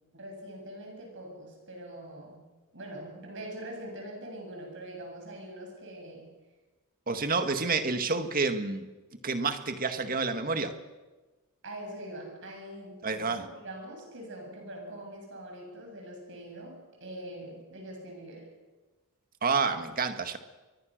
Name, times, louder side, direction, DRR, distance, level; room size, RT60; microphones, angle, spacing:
voice 1, 0.1-2.4 2.7-6.3 11.6-18.5, right 1 dB, 55° right, 1 dB, 8.0 m, -43 dB
voice 2, 7.1-8.9 9.2-10.8 13.0-13.5 19.4-20.4, right 4 dB, 40° right, 8 dB, 1.8 m, -29 dB
29.0 x 23.5 x 6.6 m, 1.2 s
head